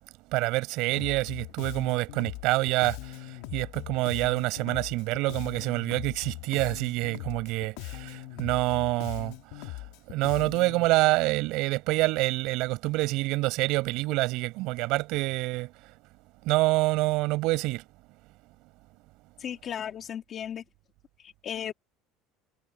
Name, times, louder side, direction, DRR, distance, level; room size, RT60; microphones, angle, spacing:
voice 1, 0.3-15.9 16.4-17.8, right 21 dB, 65° right, 4.8 m, -27 dB
Bass guitar, 1.0-10.9, left 20 dB, 75° left, 2.2 m, -40 dB
voice 2, 19.4-20.6 21.2-21.7, left 9 dB, 35° left, 2.0 m, -35 dB
cardioid pair, 145°, 0 cm